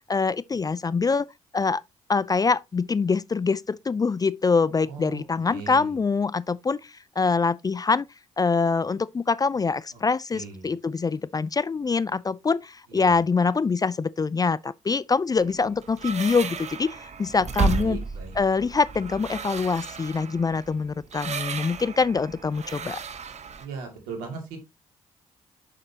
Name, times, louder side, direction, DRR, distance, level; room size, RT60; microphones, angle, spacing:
voice 1, 0.1-1.3 1.5-1.8 2.1-8.1 8.4-18.0 18.4-23.0, left 4 dB, 25° left, 0.4 m, -24 dB
voice 2, 4.9-5.2 5.5-5.9 9.9-10.0 10.3-10.7 12.9-13.1 17.7-18.4 23.6-24.6, right 5 dB, 75° right, 2.4 m, -38 dB
sound 1, 15.4-23.6, right 4 dB, 50° right, 1.0 m, -33 dB
7.3 x 6.6 x 2.8 m
hypercardioid pair, 40°, 15 cm